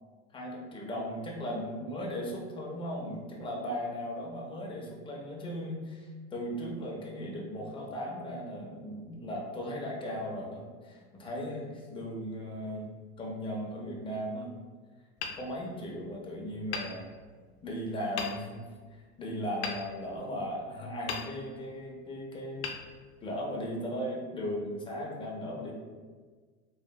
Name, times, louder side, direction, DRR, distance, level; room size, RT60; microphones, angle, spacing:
voice 1, 0.3-12.9 13.2-14.5 15.3-17.1 17.6-18.6 18.9-22.6 23.2-25.7, equal, 15° left, -2 dB, 0.5 m, -37 dB
Hammer, 15.2-16.2 16.7-17.6 18.2-18.8 19.6-20.6 21.1-21.8 22.6-23.6, left 5 dB, 75° left, 0.5 m, -40 dB
2.9 x 2.4 x 2.2 m, 1.5 s
supercardioid pair, 120°, 33 cm